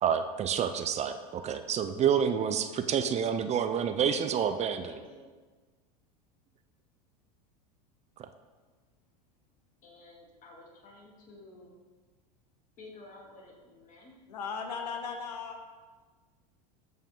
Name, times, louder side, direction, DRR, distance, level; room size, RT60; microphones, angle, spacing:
voice 1, 0.0-4.8 8.2-8.3, right 8 dB, 35° right, 9 dB, 0.6 m, -28 dB
voice 2, 4.8-5.3 9.8-11.8 12.8-14.1, left 2 dB, 40° left, -3 dB, 3.1 m, -52 dB
voice 3, 14.3-15.7, left 5 dB, 85° left, 5 dB, 1.0 m, -37 dB
13.5 x 5.5 x 3.8 m, 1.4 s
hypercardioid pair, 100°, 20 cm